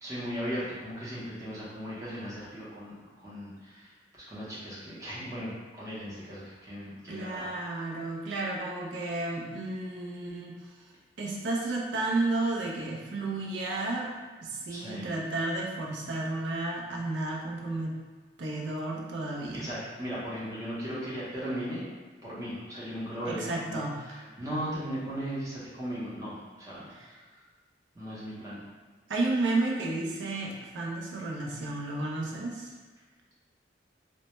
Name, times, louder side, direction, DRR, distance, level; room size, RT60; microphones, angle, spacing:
voice 1, 0.0-7.5 14.7-15.1 19.5-21.9 22.2-26.9 27.9-28.6, equal, 15° right, -9 dB, 0.6 m, -37 dB
voice 2, 7.1-10.8 11.2-14.1 14.4-18.0 18.4-19.7 23.2-24.0 26.9-27.2 29.1-32.7, right 2 dB, 75° right, -2 dB, 0.5 m, -32 dB
2.1 x 2.1 x 2.9 m, 1.4 s
head